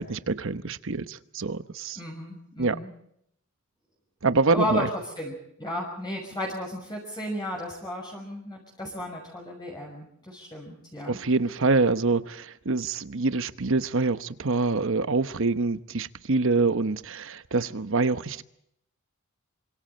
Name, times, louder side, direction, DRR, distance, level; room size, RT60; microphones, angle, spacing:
voice 1, 0.0-2.0 2.6-2.8 4.2-4.9 11.1-18.4, right 3 dB, 65° right, 1.0 m, -25 dB
voice 2, 2.0-2.9 4.5-11.2, equal, 20° left, 6.0 m, -34 dB
28.0 x 25.5 x 4.4 m
head